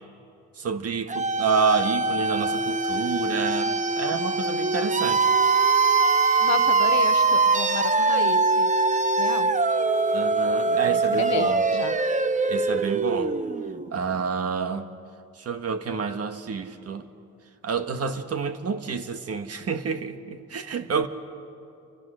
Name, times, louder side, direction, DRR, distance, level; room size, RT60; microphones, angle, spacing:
voice 1, 0.6-5.3 10.1-11.6 12.5-13.3 13.9-14.9 15.4-17.0 17.6-21.1, right 5 dB, 55° right, 1.6 m, -28 dB
sound 1, 1.1-13.9, right 3 dB, 25° right, 0.9 m, -23 dB
voice 2, 6.4-8.7 9.2-9.6 10.7-12.0, left 11 dB, 65° left, 0.9 m, -33 dB
29.5 x 25.0 x 6.4 m
cardioid pair, 90°, 30 cm